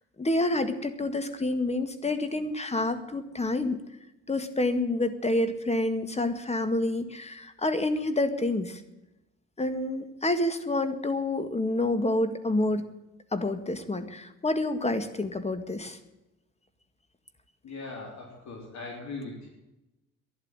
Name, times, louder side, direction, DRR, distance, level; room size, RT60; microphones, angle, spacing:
voice 1, 0.2-3.8 4.3-8.8 9.6-12.9 13.3-16.0, left 2 dB, 20° left, 10 dB, 1.9 m, -28 dB
voice 2, 17.6-19.5, left 3 dB, 65° left, 1 dB, 3.6 m, -40 dB
12.0 x 11.0 x 9.0 m, 0.93 s
cardioid pair, 90°, 30 cm